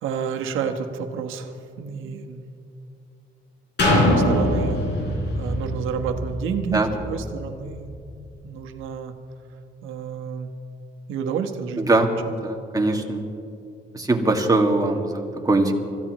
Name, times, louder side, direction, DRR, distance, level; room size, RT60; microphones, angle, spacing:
voice 1, 0.0-2.4 3.8-8.0 8.4-9.1 9.8-10.5 11.1-12.3, right 6 dB, 90° right, 5 dB, 1.2 m, -30 dB
sound 1, 3.8-7.6 8.1-8.2, left 1 dB, 60° left, 4.2 m, -23 dB
voice 2, 11.8-12.1 12.4-13.2 13.9-15.7, right 2 dB, 20° right, 1 dB, 1.9 m, -21 dB
26.0 x 15.0 x 3.0 m, 2.6 s
cardioid pair, 90°, 20 cm